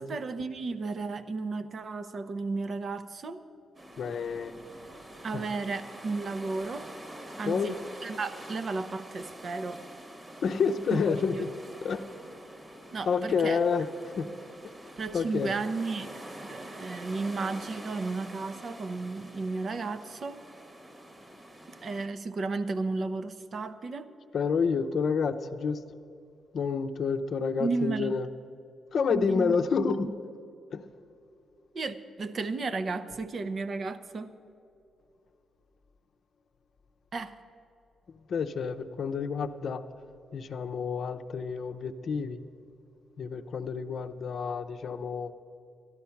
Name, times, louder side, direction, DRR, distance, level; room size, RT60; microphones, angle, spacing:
voice 1, 0.0-3.4 5.2-6.9 7.4-7.8 8.0-9.8 10.9-11.4 12.9-13.6 15.0-20.4 21.8-24.1 27.6-28.1 29.1-29.6 30.0-30.1 31.7-34.3 37.1-37.4, right 3 dB, 50° right, 11 dB, 0.7 m, -33 dB
sound 1, 3.7-22.1, right 1 dB, 25° right, 1.2 m, -46 dB
voice 2, 4.0-4.6 5.3-5.5 7.5-7.8 10.4-11.5 11.8-12.0 13.1-13.9 14.2-14.3 15.1-15.5 24.3-25.8 26.5-28.3 28.9-30.1 30.7-30.9 38.3-39.8 40.3-42.4 43.2-45.3, left 5 dB, 60° left, 9 dB, 0.6 m, -29 dB
12.5 x 12.0 x 5.8 m, 2.6 s
cardioid pair, 80°, 0 cm